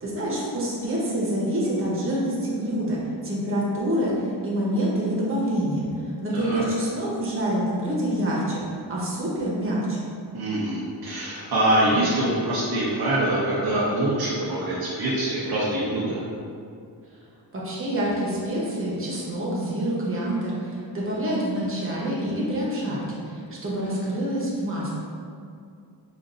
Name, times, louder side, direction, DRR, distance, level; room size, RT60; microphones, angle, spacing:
voice 1, 0.0-3.0 3.2-8.6 8.9-10.1 17.5-24.9, right 1 dB, 30° right, -6 dB, 0.9 m, -26 dB
voice 2, 10.3-16.2, right 1 dB, 60° right, -6 dB, 0.7 m, -24 dB
5.1 x 2.5 x 2.5 m, 2.4 s
wide cardioid pair, 120°, 42 cm